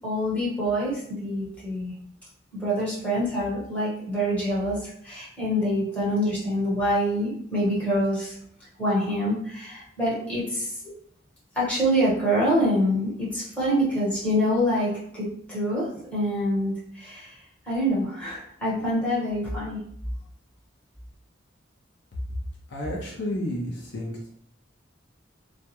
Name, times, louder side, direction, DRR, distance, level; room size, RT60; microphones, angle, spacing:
voice 1, 0.0-1.9 2.5-8.3 8.8-10.7 11.5-17.4 17.6-19.8, equal, 5° left, -9 dB, 1.0 m, -26 dB
voice 2, 22.7-24.3, left 1 dB, 60° left, -3 dB, 0.5 m, -31 dB
2.3 x 2.0 x 2.9 m, 0.67 s
head